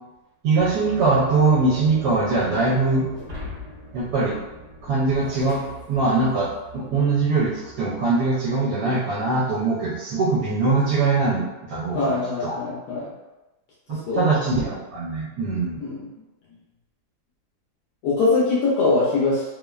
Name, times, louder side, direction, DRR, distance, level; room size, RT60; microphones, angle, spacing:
voice 1, 0.4-3.1 3.9-4.3 4.8-5.6 5.9-12.2 12.4-12.6 13.9-15.8, right 3 dB, 80° right, -8 dB, 1.2 m, -22 dB
sound 1, 0.5-8.9, right 2 dB, 45° left, 1.0 m, -42 dB
Shatter, 3.1-6.6, left 2 dB, 50° right, 1.1 m, -41 dB
voice 2, 11.9-13.1 13.9-14.3 15.8-16.1 18.0-19.4, left 3 dB, 75° left, -7 dB, 1.1 m, -22 dB
3.0 x 2.1 x 2.2 m, 1.1 s
omnidirectional pair, 1.8 m